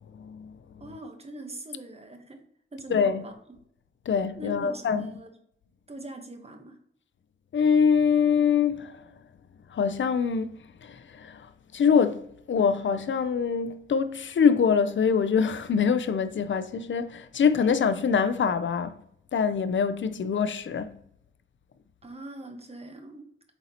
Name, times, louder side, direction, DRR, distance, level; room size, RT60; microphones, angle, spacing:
voice 1, 0.1-0.6 2.9-3.2 4.1-5.1 7.5-9.1 9.7-19.0 19.3-21.0, left 6 dB, 65° left, 0.4 m, -24 dB
voice 2, 0.8-2.4 2.7-3.4 4.3-5.3 5.9-6.8 22.0-23.3, right 1 dB, 30° right, 0.9 m, -41 dB
7.9 x 4.2 x 2.8 m
wide cardioid pair, 125°, 21 cm